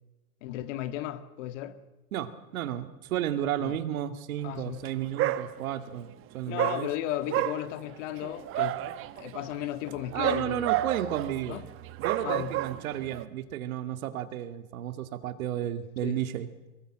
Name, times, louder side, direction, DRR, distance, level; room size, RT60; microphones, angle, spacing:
voice 1, 0.4-1.8 3.6-3.8 4.4-4.8 6.5-8.8 9.2-10.7 11.5-11.6 12.2-12.5 16.0-16.2, left 13 dB, 55° left, 1.9 m, -35 dB
voice 2, 2.1-6.9 10.1-11.6 12.0-16.5, right 11 dB, 70° right, 2.3 m, -33 dB
Dog, 4.7-4.9 5.2-5.9 6.6-13.2, right 14 dB, 30° right, 1.1 m, -31 dB
25.0 x 21.5 x 7.6 m
hypercardioid pair, 140°, 44 cm